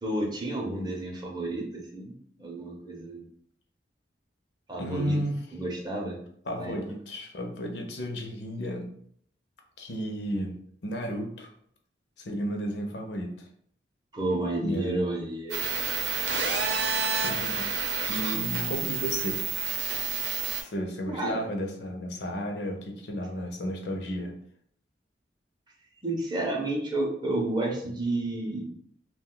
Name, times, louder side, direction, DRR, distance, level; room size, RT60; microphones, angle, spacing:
voice 1, 0.0-2.1 2.4-3.2 4.7-5.2 5.5-6.2 6.6-6.8 14.1-15.6 21.1-21.4 26.0-28.6, right 2 dB, 25° right, -1 dB, 0.6 m, -31 dB
voice 2, 4.8-5.4 6.5-8.9 9.8-10.6 10.8-11.5 12.2-13.5 14.6-15.0 17.2-17.7 18.1-19.4 20.6-24.3, equal, 65° left, 3 dB, 0.5 m, -33 dB
sound 1, 15.5-20.6, right 5 dB, 75° right, 0.7 m, -29 dB
2.4 x 2.2 x 3.7 m, 0.64 s
head